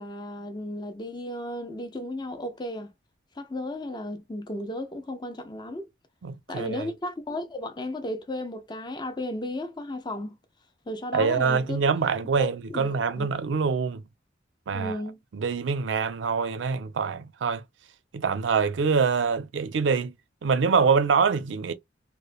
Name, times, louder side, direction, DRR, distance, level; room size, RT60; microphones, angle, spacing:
voice 1, 0.0-2.9 3.4-5.9 6.5-10.4 10.9-11.8 12.4-13.3 14.7-15.2, left 1 dB, 25° left, 0.5 m, -34 dB
voice 2, 6.2-6.8 11.1-14.0 14.7-15.0 15.3-17.6 18.1-20.1 20.4-21.7, right 5 dB, 75° right, 0.4 m, -25 dB
3.0 x 2.1 x 2.3 m
head